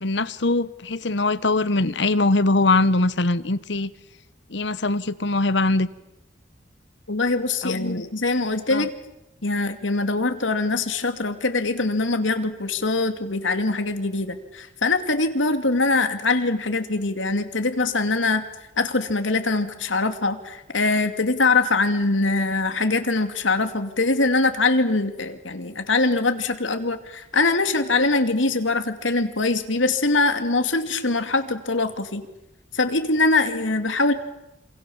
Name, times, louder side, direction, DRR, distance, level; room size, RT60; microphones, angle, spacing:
voice 1, 0.0-3.9 4.5-5.9 7.6-8.1 8.7-8.9, left 2 dB, 70° left, 1.1 m, -22 dB
voice 2, 7.1-8.9 9.4-18.4 18.8-32.2 32.7-34.1, left 3 dB, 85° left, 2.5 m, -23 dB
27.5 x 27.0 x 7.2 m
head